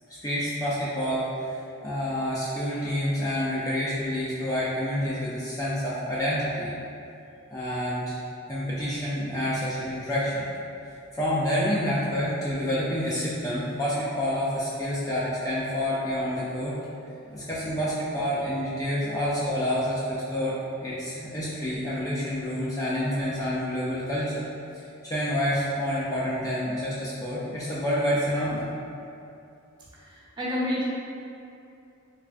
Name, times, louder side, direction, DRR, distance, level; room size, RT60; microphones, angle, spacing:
voice 1, 0.2-1.6 1.8-6.7 7.5-8.2 8.5-10.5 11.1-16.8 17.3-24.5 24.7-28.6, equal, 15° left, -8 dB, 0.4 m, -28 dB
voice 2, 17.2-17.5 29.9-30.9, left 1 dB, 25° right, -8 dB, 0.8 m, -31 dB
3.5 x 3.3 x 2.5 m, 2.7 s
head